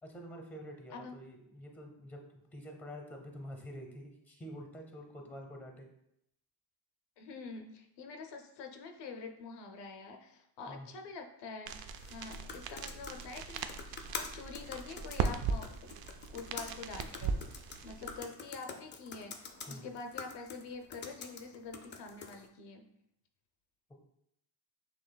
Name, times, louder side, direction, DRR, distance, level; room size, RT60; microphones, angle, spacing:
voice 1, 0.0-5.9 10.7-10.9 19.7-19.9, equal, 5° left, 2 dB, 0.8 m, -47 dB
voice 2, 7.2-15.7 16.3-22.9, left 4 dB, 60° left, 4 dB, 0.6 m, -46 dB
sound 1, 11.7-18.2, right 5 dB, 55° right, 0.5 m, -39 dB
sound 2, 11.9-22.5, left 5 dB, 25° left, 0.4 m, -47 dB
6.1 x 3.0 x 2.2 m, 0.77 s
cardioid pair, 115°, 47 cm